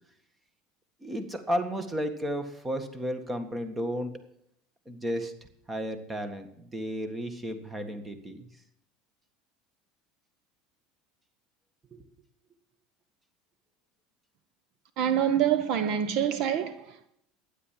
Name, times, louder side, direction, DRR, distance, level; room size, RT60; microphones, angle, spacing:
voice 1, 1.0-4.1 4.9-5.3 5.7-8.5 11.9-12.0, equal, 15° right, 1.7 m, -33 dB
voice 2, 15.0-17.1, right 9 dB, 55° right, 1.1 m, -26 dB
12.5 x 10.0 x 7.5 m
supercardioid pair, 135°, 0 cm